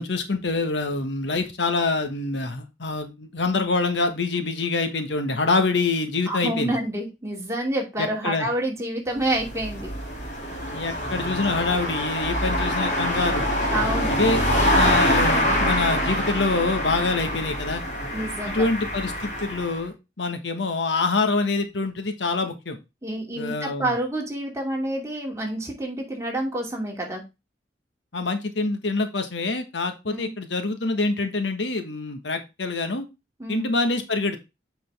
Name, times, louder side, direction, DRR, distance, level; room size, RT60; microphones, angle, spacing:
voice 1, 0.0-6.8 8.2-8.5 10.7-13.5 14.1-14.4 14.7-17.8 18.5-22.8 23.4-23.9 28.1-33.1 33.5-34.4, left 3 dB, 75° left, 7 dB, 1.4 m, -25 dB
voice 2, 6.3-9.9 13.7-14.1 18.1-18.7 23.0-27.2 30.1-30.3 33.4-33.7, right 1 dB, 15° right, -1 dB, 2.5 m, -28 dB
sound 1, 9.1-19.8, equal, 40° left, 2.8 m, -25 dB
7.9 x 5.2 x 3.4 m, 0.25 s
head